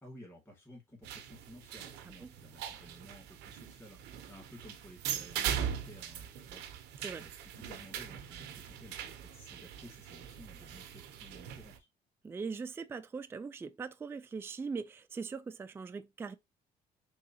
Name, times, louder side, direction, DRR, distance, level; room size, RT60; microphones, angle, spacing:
voice 1, 0.0-11.9, equal, 15° left, 2.0 m, -55 dB
sound 1, 1.0-11.8, right 9 dB, 90° right, 0.7 m, -41 dB
voice 2, 12.2-16.3, right 5 dB, 15° right, 0.3 m, -40 dB
3.7 x 3.1 x 2.8 m
cardioid pair, 110°, 17 cm